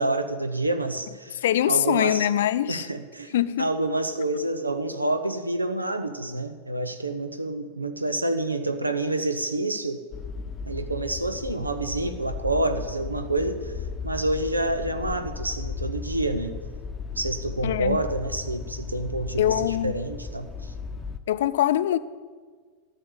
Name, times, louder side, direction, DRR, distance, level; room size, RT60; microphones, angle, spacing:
voice 1, 0.0-2.3 2.7-10.0 10.7-13.7 14.0-16.5 17.2-20.7, right 2 dB, 85° right, 0.7 m, -28 dB
voice 2, 1.4-2.9 3.3-3.7 17.6-18.0 19.4-19.9 21.3-22.0, left 12 dB, 60° left, 0.5 m, -23 dB
sound 1, 10.1-21.2, left 5 dB, 20° left, 0.8 m, -36 dB
13.0 x 6.9 x 8.9 m
figure-of-eight pair, 90°, 0 cm